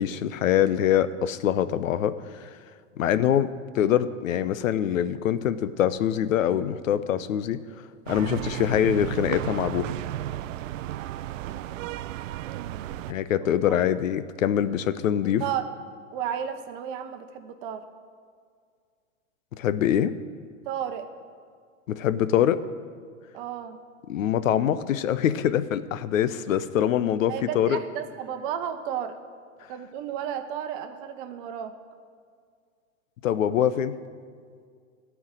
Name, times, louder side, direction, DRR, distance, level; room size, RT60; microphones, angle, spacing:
voice 1, 0.0-2.1 2.4-2.5 3.0-7.6 8.1-9.9 13.1-15.4 19.6-20.1 21.9-22.6 24.1-27.8 33.2-33.9, left 10 dB, 75° left, 14 dB, 0.7 m, -24 dB
sound 1, 8.1-13.1, right 13 dB, 75° right, 0.5 m, -33 dB
voice 2, 12.5-12.9 13.4-13.6 15.4-15.7 16.1-17.8 20.7-21.1 23.3-23.8 27.3-29.2 29.7-31.7, right 9 dB, 40° right, 9 dB, 0.9 m, -33 dB
13.5 x 4.8 x 8.9 m, 2.1 s
hypercardioid pair, 140°, 39 cm